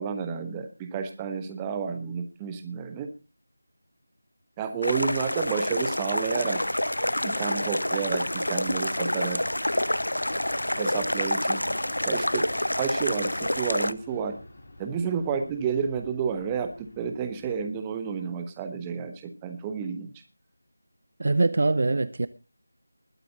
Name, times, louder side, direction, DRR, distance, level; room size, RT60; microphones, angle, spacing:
voice 1, 0.0-3.1 4.6-6.6 7.2-9.4 10.7-11.6 12.0-12.5 12.8-14.4 14.8-20.1, right 6 dB, 10° right, 7 dB, 1.1 m, -30 dB
sound 1, 4.8-13.9, left 1 dB, 80° left, 0.7 m, -28 dB
sound 2, 6.5-17.7, left 1 dB, 40° left, 4.0 m, -46 dB
voice 2, 21.2-22.3, right 3 dB, 45° right, 15 dB, 0.6 m, -23 dB
20.5 x 8.4 x 4.0 m, 0.31 s
figure-of-eight pair, 165°, 0 cm